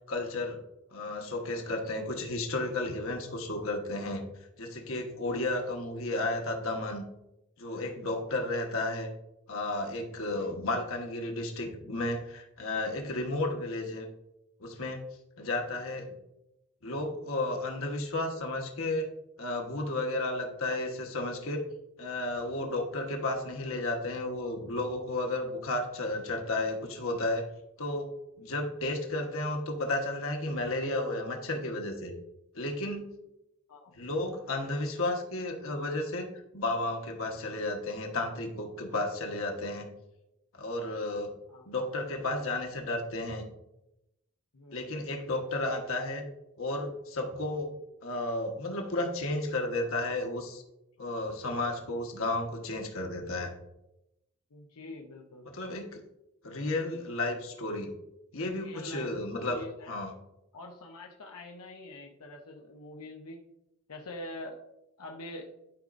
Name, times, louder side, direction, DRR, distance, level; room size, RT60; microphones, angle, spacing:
voice 1, 0.1-0.6 0.9-4.2 4.6-7.0 7.6-9.1 9.5-14.1 14.6-15.0 15.4-16.1 16.8-19.0 19.4-21.7 22.0-27.4 27.8-32.1 32.5-33.1 33.9-39.9 40.5-41.3 41.7-43.4 44.7-46.3 46.6-47.8 48.0-50.6 51.0-53.5 55.5-56.0 56.4-57.9 58.3-60.1, left 2 dB, 65° left, 2 dB, 1.2 m, -33 dB
voice 2, 5.3-5.6 10.3-10.6 33.7-34.0 41.5-41.7 44.5-44.9 49.5-49.6 54.5-55.5 58.6-59.9 60.5-63.4 63.9-64.6 65.0-65.5, left 1 dB, 85° left, 0 dB, 0.8 m, -45 dB
11.5 x 5.1 x 2.6 m, 0.87 s
head